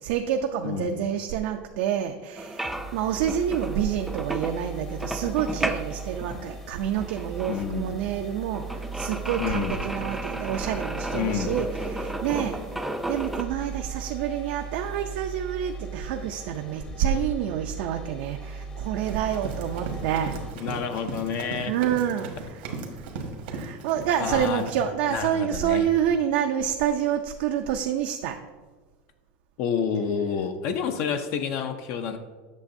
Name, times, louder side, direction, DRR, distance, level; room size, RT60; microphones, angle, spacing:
voice 1, 0.0-12.6 13.1-20.4 21.7-22.6 22.9-23.0 23.5-28.4, right 9 dB, 75° right, 4 dB, 0.4 m, -28 dB
sound 1, 2.4-13.4, right 1 dB, 5° right, 0.4 m, -34 dB
sound 2, 2.6-20.5, right 4 dB, 20° left, 0.7 m, -38 dB
voice 2, 7.5-8.0 9.4-9.8 11.1-11.6 20.6-21.8 24.2-24.7 25.1-25.9 29.6-32.2, left 7 dB, 55° left, 8 dB, 0.5 m, -29 dB
Run, 19.0-24.8, right 3 dB, 90° right, 1.4 m, -37 dB
8.3 x 6.3 x 2.6 m, 1.3 s
supercardioid pair, 145°, 5 cm